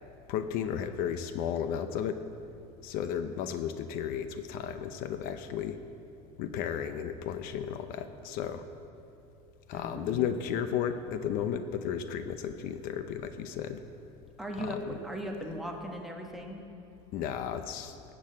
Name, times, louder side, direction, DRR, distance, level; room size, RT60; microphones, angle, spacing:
voice 1, 0.3-2.2 2.8-5.8 6.4-8.7 9.7-13.8 14.6-15.0 17.1-18.0, left 8 dB, 65° left, 9 dB, 0.7 m, -34 dB
voice 2, 9.7-10.3 14.4-14.8 15.0-16.6, equal, ahead, 0 dB, 1.4 m, -38 dB
18.0 x 6.5 x 7.7 m, 2.7 s
cardioid pair, 150°, 16 cm